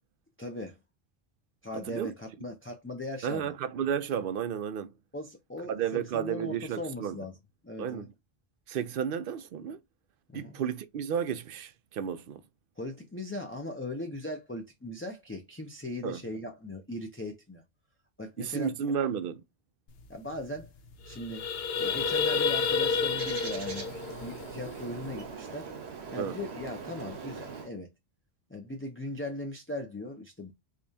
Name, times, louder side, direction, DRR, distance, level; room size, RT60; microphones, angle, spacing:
voice 1, 0.4-0.8 1.6-3.5 5.1-7.3 7.6-8.1 10.3-10.6 12.8-17.6 18.2-18.7 20.1-20.7 21.0-21.5 21.8-25.7 26.1-27.9 28.5-30.5, left 1 dB, 15° left, 0.5 m, -39 dB
voice 2, 3.2-4.9 5.7-7.3 7.8-8.1 8.7-9.8 10.3-12.4 16.0-16.2 18.4-19.4 26.2-26.4, right 8 dB, 65° right, 0.7 m, -32 dB
sound 1, 20.0-20.1 20.3-20.6 20.9-25.3, left 5 dB, 75° left, 0.8 m, -30 dB
Bird, 21.7-27.7, right 5 dB, 85° right, 1.2 m, -42 dB
5.0 x 2.4 x 2.6 m
omnidirectional pair, 1.1 m